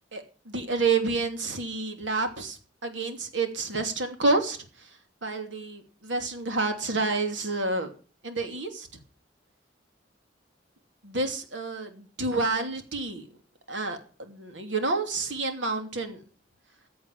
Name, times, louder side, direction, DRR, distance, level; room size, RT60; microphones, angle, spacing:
voice 1, 0.1-4.6 5.2-7.9 8.2-8.9 11.0-13.3 13.7-16.2, right 3 dB, 90° right, 6 dB, 2.8 m, -29 dB
15.0 x 7.8 x 7.2 m, 0.39 s
head